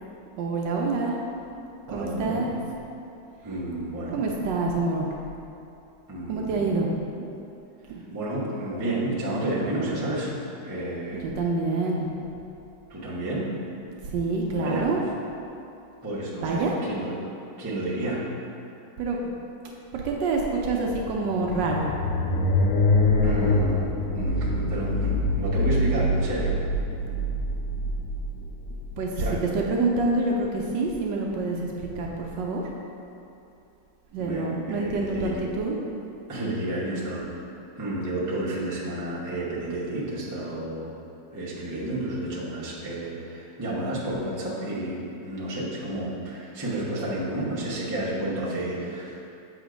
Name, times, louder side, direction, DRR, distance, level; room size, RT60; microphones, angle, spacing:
voice 1, 0.4-1.2 1.9-2.6 4.1-5.1 6.3-7.2 7.9-8.0 11.2-12.1 14.1-15.0 16.4-16.8 19.0-19.2 19.9-21.9 29.0-29.1 29.5-32.6 34.1-35.8, right 3 dB, 75° right, -1 dB, 1.2 m, -27 dB
voice 2, 1.9-2.5 3.4-4.2 6.1-6.8 8.1-10.3 10.6-11.2 12.9-13.5 14.5-14.8 16.0-17.1 17.6-18.2 23.2-26.5 29.2-29.4 34.2-35.4 36.3-37.3 37.8-40.9 41.3-49.1, right 1 dB, 20° right, -7 dB, 0.5 m, -31 dB
sound 1, 21.1-29.5, left 2 dB, 75° left, 0.9 m, -25 dB
7.0 x 2.8 x 5.0 m, 2.7 s
omnidirectional pair, 2.2 m